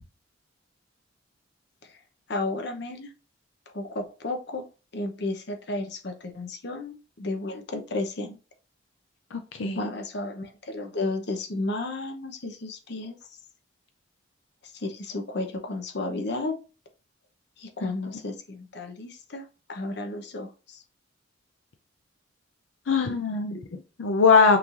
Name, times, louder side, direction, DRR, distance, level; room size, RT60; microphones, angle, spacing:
voice 1, 2.3-3.1 3.7-4.6 4.9-8.4 9.7-13.2 14.7-16.6 17.6-20.8, left 2 dB, 60° left, 5 dB, 0.9 m, -33 dB
voice 2, 9.3-9.8 17.8-17.9 22.9-24.6, left 4 dB, 80° left, 7 dB, 0.5 m, -22 dB
5.8 x 3.2 x 2.5 m, 0.33 s
head